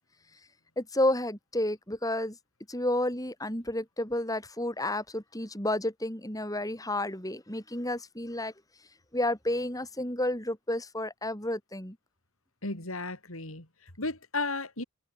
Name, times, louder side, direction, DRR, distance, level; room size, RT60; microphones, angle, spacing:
voice 1, 0.8-2.4 2.7-8.5 9.1-12.0, left 1 dB, 15° left, 7.5 m, -31 dB
voice 2, 12.6-14.8, left 3 dB, 70° left, 6.5 m, -34 dB
head